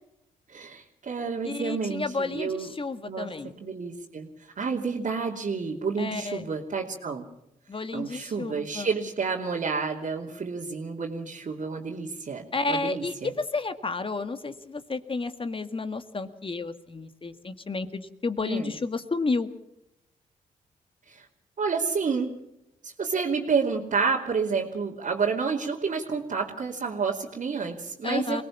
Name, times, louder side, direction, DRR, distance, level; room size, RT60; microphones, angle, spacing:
voice 1, 0.5-2.7 3.1-3.3 3.6-7.3 7.9-13.3 18.4-18.7 21.1-21.3 21.6-22.3 22.8-28.4, right 5 dB, 55° right, -3 dB, 2.8 m, -29 dB
voice 2, 1.4-3.5 6.0-6.5 7.7-8.9 12.5-19.5 28.0-28.4, left 3 dB, 35° left, 10 dB, 1.9 m, -31 dB
23.0 x 18.5 x 7.2 m, 0.84 s
supercardioid pair, 50°, 16 cm